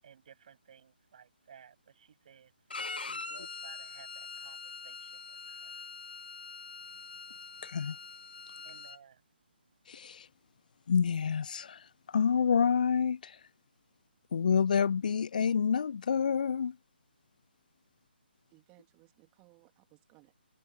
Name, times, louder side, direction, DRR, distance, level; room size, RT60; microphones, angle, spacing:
voice 1, 0.0-2.5 2.9-5.8 8.6-9.2, right 8 dB, 45° right, 7.5 m, -58 dB
Bowed string instrument, 2.7-9.0, left 4 dB, 70° left, 2.5 m, -43 dB
voice 2, 7.6-8.0 9.9-10.3 10.9-13.4 14.3-16.8, left 6 dB, 50° left, 0.5 m, -28 dB
voice 3, 18.5-20.4, right 27 dB, 20° right, 2.6 m, -63 dB
figure-of-eight pair, 140°, 6 cm